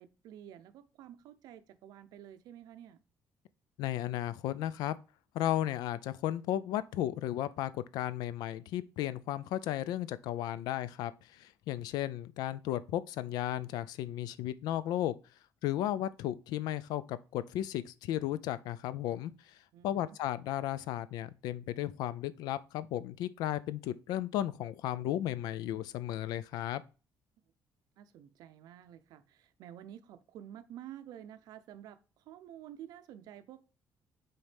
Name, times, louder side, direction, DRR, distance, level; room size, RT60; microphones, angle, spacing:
voice 1, 0.0-3.0 19.7-20.2 28.0-33.6, right 11 dB, 75° right, 0.6 m, -50 dB
voice 2, 3.8-5.0 5.3-15.1 15.6-19.6 19.8-26.8, left 12 dB, 85° left, 0.4 m, -34 dB
7.0 x 4.2 x 3.4 m
cardioid pair, 150°, 7 cm